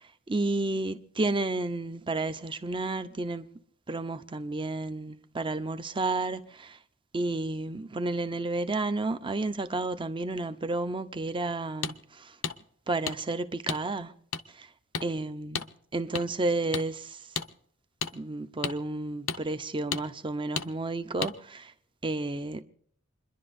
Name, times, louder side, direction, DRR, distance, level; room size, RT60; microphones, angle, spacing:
voice 1, 0.3-3.5 3.9-6.8 7.1-12.3 12.9-14.1 14.5-14.6 15.0-15.6 15.9-17.2 18.1-21.7 22.0-22.6, right 2 dB, 25° right, 0.7 m, -31 dB
sound 1, 11.8-11.9 12.4-12.6 13.1-13.2 13.7-13.8 14.3-14.4 14.9-15.1 15.5-15.7 16.1-16.2 16.7-16.9 17.3-17.5 18.0-18.1 18.6-18.8 19.3-19.4 19.9-20.0 20.6-20.7 21.2-21.3, left 6 dB, 65° left, 0.7 m, -31 dB
28.5 x 11.0 x 2.6 m
head